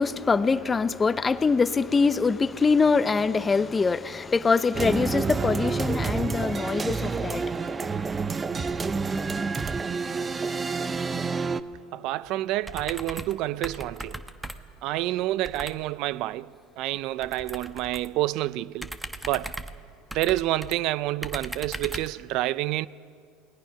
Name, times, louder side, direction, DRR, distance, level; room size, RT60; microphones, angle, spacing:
voice 1, 0.0-7.7, left 4 dB, 20° left, 0.7 m, -24 dB
sound 1, 4.7-11.6, right 4 dB, 20° right, 0.7 m, -28 dB
voice 2, 11.9-14.2 14.8-19.0 19.2-19.6 20.1-22.9, right 16 dB, 60° right, 0.5 m, -28 dB
sound 2, 12.6-13.4 13.6-14.8 15.4-15.8 17.2-18.2 18.8-20.8 21.2-22.2, right 1 dB, 5° right, 1.0 m, -38 dB
28.5 x 19.5 x 5.9 m
supercardioid pair, 105°, 0 cm